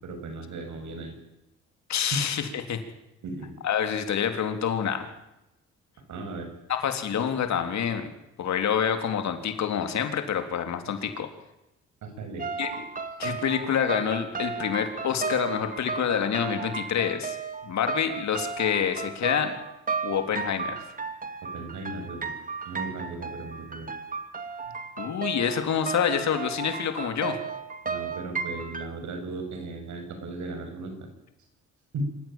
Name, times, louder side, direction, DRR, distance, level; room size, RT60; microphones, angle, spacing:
voice 1, 0.0-1.1 2.1-2.2 3.2-3.6 6.1-6.5 12.0-12.5 21.4-22.3 22.7-23.9 27.8-31.1 31.9-32.1, right 2 dB, 70° right, 6 dB, 6.9 m, -36 dB
voice 2, 1.9-2.8 3.6-5.1 6.7-8.1 8.4-11.3 12.6-12.8 13.2-17.4 17.6-19.5 20.0-20.8 25.0-27.4, left 8 dB, 65° left, 7 dB, 3.6 m, -27 dB
sound 1, 12.4-28.9, right 5 dB, 25° right, 2.3 m, -34 dB
26.5 x 15.0 x 9.1 m, 0.89 s
cardioid pair, 90°, 30 cm